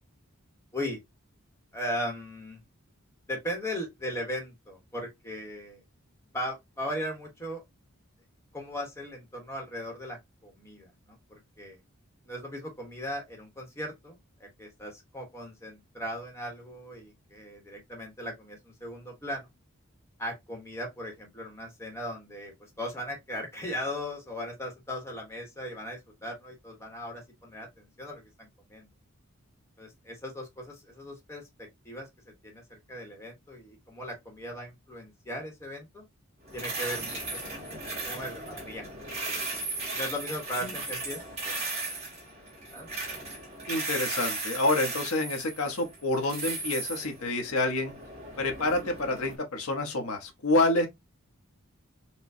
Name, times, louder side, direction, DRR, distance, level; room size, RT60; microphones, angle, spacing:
voice 1, 1.7-2.6 3.3-5.8 6.3-7.6 8.5-11.8 12.2-19.5 20.2-28.9 29.8-32.1 32.4-36.0 36.5-37.7 38.1-38.9 39.2-39.6 39.9-42.0 42.7-42.9, equal, 15° left, 1.1 m, -38 dB
sound 1, 36.5-49.3, right 3 dB, 30° right, 1.6 m, -36 dB
voice 2, 43.7-47.9 48.4-50.9, left 2 dB, 85° left, 1.0 m, -28 dB
4.5 x 2.2 x 2.6 m
head